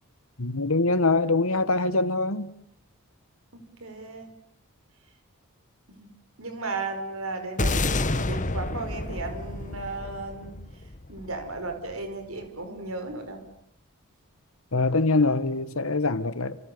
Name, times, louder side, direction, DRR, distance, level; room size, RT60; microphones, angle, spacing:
voice 1, 0.4-2.5 14.7-16.6, left 3 dB, 70° left, 1.8 m, -24 dB
voice 2, 3.5-4.3 5.9-6.1 6.4-10.6 11.1-13.4, right 3 dB, 70° right, 5.3 m, -35 dB
sound 1, 7.6-12.0, left 2 dB, 35° left, 1.3 m, -29 dB
29.5 x 28.5 x 7.0 m
head